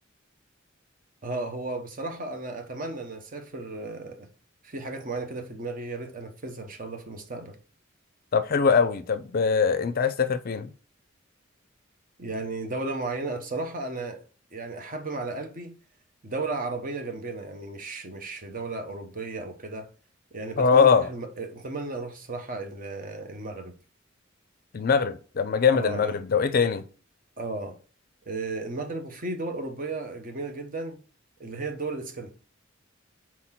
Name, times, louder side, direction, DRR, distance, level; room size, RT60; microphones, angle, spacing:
voice 1, 1.2-4.3 4.6-7.6 12.2-14.2 14.5-15.7 16.2-19.9 20.3-23.7 25.7-26.2 27.4-27.8 28.3-31.0 31.4-32.3, right 3 dB, 45° right, 1.0 m, -34 dB
voice 2, 8.3-10.7 20.6-21.1 24.7-26.8, left 5 dB, 50° left, 0.4 m, -22 dB
4.4 x 4.3 x 5.7 m
head